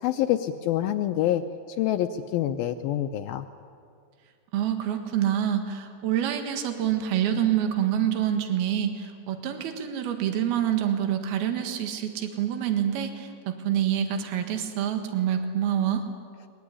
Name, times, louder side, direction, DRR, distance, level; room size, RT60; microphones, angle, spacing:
voice 1, 0.0-1.4 1.8-3.5, left 12 dB, 75° left, 7 dB, 2.4 m, -26 dB
voice 2, 4.5-16.0, right 10 dB, 75° right, 6 dB, 3.5 m, -26 dB
21.5 x 21.5 x 9.9 m, 2.2 s
omnidirectional pair, 4.5 m